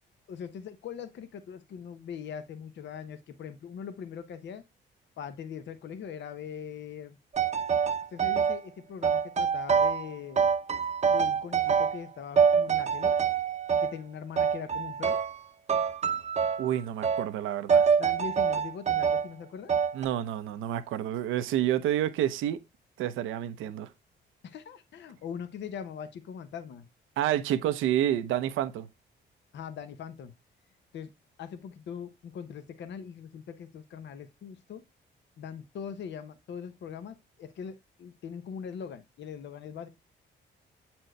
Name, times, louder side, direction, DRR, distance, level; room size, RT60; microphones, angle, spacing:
voice 1, 0.3-4.6 5.2-7.2 8.1-10.5 11.1-13.2 13.8-15.2 18.0-19.7 24.4-26.9 29.5-30.3 30.9-31.1 31.4-34.8 35.4-39.9, left 7 dB, 65° left, 0.8 m, -41 dB
sound 1, 7.3-8.6 9.0-10.1 10.4-12.1 12.4-13.9 14.4-15.4 15.7-16.7 17.0-17.3 17.7-19.3 19.7-20.1, right 6 dB, 35° right, 0.7 m, -25 dB
voice 2, 16.6-17.9 19.9-22.6 23.0-23.9 27.2-28.9, right 11 dB, 90° right, 0.7 m, -29 dB
7.8 x 4.4 x 3.2 m
cardioid pair, 90°, 20 cm